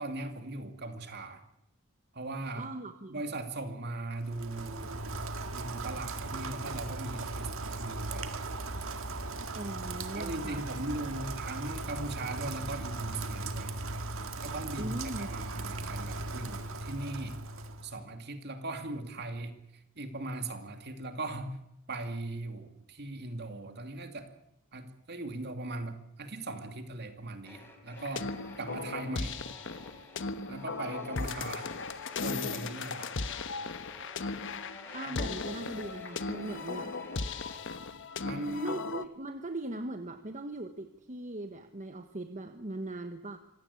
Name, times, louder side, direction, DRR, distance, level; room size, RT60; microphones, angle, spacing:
voice 1, 0.0-1.4 2.1-2.7 3.1-5.1 5.5-8.3 10.1-13.7 14.4-17.4 17.8-19.6 20.0-21.6 21.9-24.3 24.7-28.3 28.6-29.4 30.5-31.7 32.2-33.1 35.0-35.1 38.2-38.8, right 2 dB, 50° right, 7 dB, 2.6 m, -39 dB
voice 2, 2.5-3.2 9.5-10.6 14.8-15.3 34.9-36.9 38.6-43.4, right 2 dB, 35° right, 7 dB, 1.2 m, -39 dB
Rain, 4.2-18.0, right 2 dB, 65° right, 1.8 m, -38 dB
sound 1, 27.4-37.6, left 2 dB, 10° left, 4.3 m, -52 dB
sound 2, 28.0-39.1, left 4 dB, 60° left, 1.1 m, -37 dB
25.5 x 17.0 x 8.5 m, 0.82 s
head